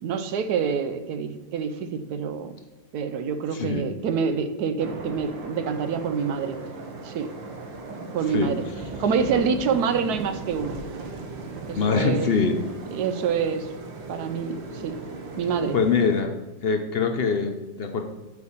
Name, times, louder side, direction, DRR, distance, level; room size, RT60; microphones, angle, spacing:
voice 1, 0.0-2.5 2.9-6.6 7.0-7.3 8.1-8.6 9.0-10.8 11.7-12.3 12.9-13.7 14.1-15.0 15.4-15.8, right 6 dB, 65° right, 10 dB, 1.1 m, -26 dB
voice 2, 3.5-3.9 8.3-8.5 11.7-12.5 15.7-16.4 16.6-18.0, left 5 dB, 60° left, 5 dB, 0.6 m, -23 dB
sound 1, 4.8-16.2, right 3 dB, 85° right, 1.8 m, -37 dB
8.1 x 4.7 x 7.2 m, 1.1 s
omnidirectional pair, 2.0 m